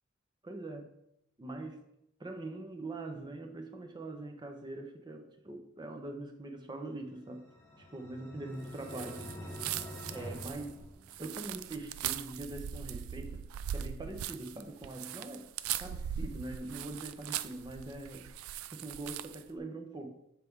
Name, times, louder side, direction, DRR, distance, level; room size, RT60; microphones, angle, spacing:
voice 1, 0.4-0.9 1.4-1.8 2.2-7.5 7.8-9.3 10.1-10.8 11.2-13.4 13.7-15.5 15.8-18.3 18.7-20.1, right 2 dB, 20° right, 4 dB, 0.5 m, -43 dB
sound 1, 7.0-11.6, equal, 10° left, 1.0 m, -47 dB
sound 2, 8.8-19.5, right 10 dB, 90° right, 0.3 m, -40 dB
6.5 x 4.5 x 3.5 m, 0.80 s
head